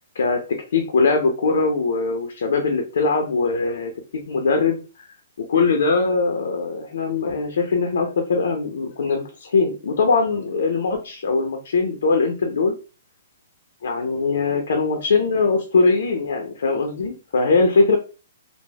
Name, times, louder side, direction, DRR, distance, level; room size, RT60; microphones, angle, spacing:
voice 1, 0.1-4.8 5.5-12.7 13.8-18.0, left 4 dB, 75° left, 4 dB, 0.5 m, -21 dB
3.3 x 2.0 x 2.2 m, 0.33 s
hypercardioid pair, 140°, 0 cm